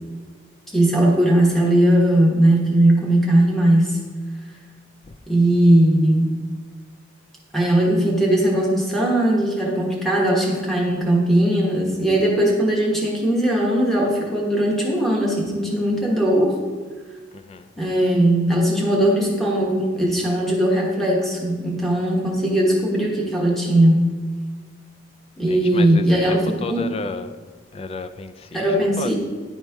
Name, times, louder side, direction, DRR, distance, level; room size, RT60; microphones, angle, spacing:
voice 1, 0.7-4.0 5.3-6.3 7.5-16.5 17.8-24.1 25.4-26.9 28.5-29.1, right 1 dB, ahead, -4 dB, 1.1 m, -19 dB
voice 2, 17.3-17.7 25.5-27.3 27.7-29.1, left 3 dB, 30° left, 10 dB, 0.3 m, -33 dB
10.5 x 4.2 x 3.4 m, 1.5 s
head